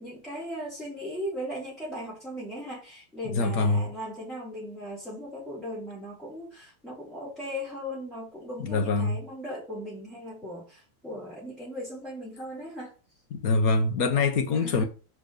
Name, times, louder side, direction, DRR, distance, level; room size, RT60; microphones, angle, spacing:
voice 1, 0.0-12.9 14.6-14.9, equal, ahead, 3.6 m, -38 dB
voice 2, 3.3-3.8 8.6-9.2 13.3-14.8, left 3 dB, 50° left, 1.4 m, -24 dB
6.2 x 5.2 x 5.1 m
omnidirectional pair, 2.2 m